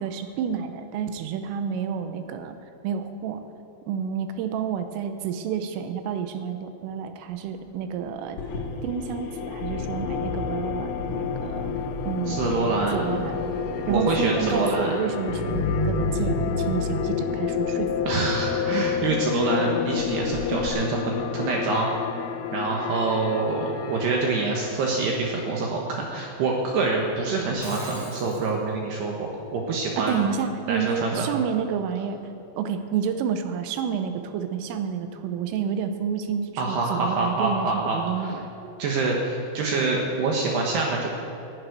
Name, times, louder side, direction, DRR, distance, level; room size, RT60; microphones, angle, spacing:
voice 1, 0.0-2.6 2.8-3.4 3.9-8.4 8.8-11.7 12.0-13.5 13.9-18.1 30.0-32.2 32.6-38.4, right 7 dB, 85° right, 8 dB, 3.4 m, -29 dB
sound 1, 8.4-20.7, left 2 dB, 50° left, 2.6 m, -31 dB
sound 2, 8.5-25.4, left 9 dB, 80° left, 3.1 m, -31 dB
voice 2, 12.3-12.9 13.9-15.0 18.1-22.0 22.5-30.2 30.7-31.4 36.6-38.3 38.8-41.1, right 3 dB, 70° right, -1 dB, 2.9 m, -26 dB
Shatter, 27.4-28.5, equal, 15° right, 2.5 m, -41 dB
11.0 x 11.0 x 9.6 m, 2.7 s
omnidirectional pair, 5.9 m